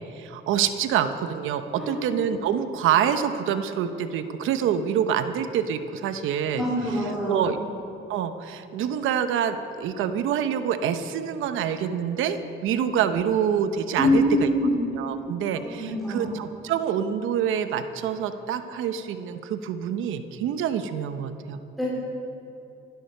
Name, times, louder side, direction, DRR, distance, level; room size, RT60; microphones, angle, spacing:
voice 1, 0.2-6.6 7.3-7.6 8.1-14.5 14.9-21.6, right 8 dB, 90° right, 10 dB, 0.9 m, -26 dB
voice 2, 1.8-2.1 6.5-7.6 14.0-14.8 15.8-16.3 21.8-21.9, left 1 dB, ahead, -7 dB, 3.8 m, -24 dB
15.0 x 11.5 x 6.6 m, 2.8 s
cardioid pair, 90°, 20 cm